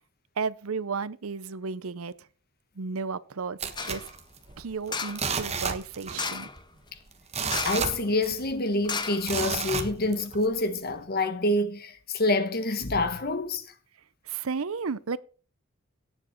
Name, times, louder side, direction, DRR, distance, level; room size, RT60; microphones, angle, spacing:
voice 1, 0.4-2.1 2.8-4.1 4.6-6.5 14.3-15.2, right 5 dB, 80° right, 0.7 m, -33 dB
sound 1, 3.6-4.7 5.1-6.3 6.6-6.7 7.1-8.6 9.2-10.5 10.9-11.0, right 5 dB, 30° right, 1.4 m, -31 dB
sound 2, 3.8-4.1 4.9-5.3 6.1-6.6 7.5-8.0 8.2-8.3 8.8-9.7 10.2-10.3, left 5 dB, 20° left, 0.8 m, -34 dB
voice 2, 7.6-13.6, left 2 dB, 45° left, 1.4 m, -27 dB
17.0 x 7.2 x 4.5 m
head